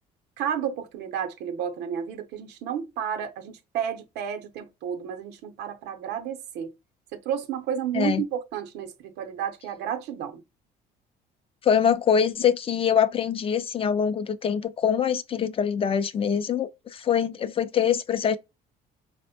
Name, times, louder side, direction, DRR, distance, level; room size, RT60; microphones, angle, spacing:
voice 1, 0.4-6.7 7.1-10.4, right 8 dB, 85° right, 0.6 m, -31 dB
voice 2, 11.6-18.4, left 8 dB, 35° left, 0.4 m, -24 dB
4.1 x 2.1 x 2.7 m
cardioid pair, 110°, 17 cm